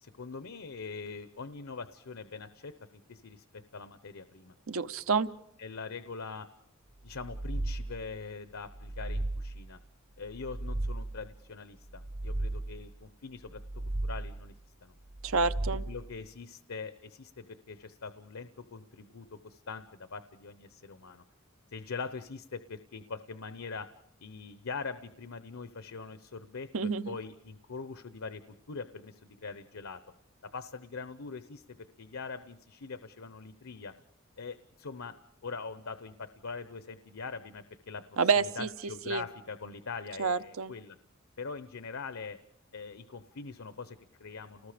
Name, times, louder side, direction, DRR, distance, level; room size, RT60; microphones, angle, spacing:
voice 1, 0.0-4.5 5.6-6.5 7.0-9.8 10.2-14.5 14.8-14.9 15.9-21.2 21.7-23.9 24.2-28.4 28.7-30.0 30.5-33.9 34.4-35.1 35.4-41.0 41.4-42.4 42.7-44.7, left 4 dB, 80° left, 11 dB, 0.8 m, -43 dB
voice 2, 4.7-5.3 15.2-15.8 26.7-27.2 38.2-38.7 39.1-39.2 40.2-40.7, right 5 dB, 80° right, 13 dB, 0.8 m, -28 dB
sound 1, 7.1-8.2 8.7-9.8 10.3-11.4 11.9-13.0 13.5-14.5 15.1-16.2, right 2 dB, 35° right, 0.9 m, -36 dB
30.0 x 19.5 x 5.0 m, 0.78 s
head